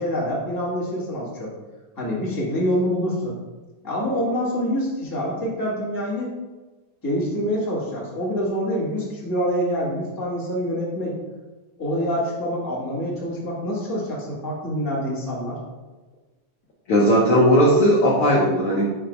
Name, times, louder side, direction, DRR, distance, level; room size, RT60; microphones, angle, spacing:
voice 1, 0.0-1.5 2.0-3.3 3.8-6.3 7.0-11.2 11.8-15.6, equal, 15° left, -7 dB, 0.6 m, -26 dB
voice 2, 16.9-18.9, equal, 70° left, -4 dB, 1.3 m, -17 dB
5.6 x 3.3 x 5.2 m, 1.2 s
omnidirectional pair, 3.5 m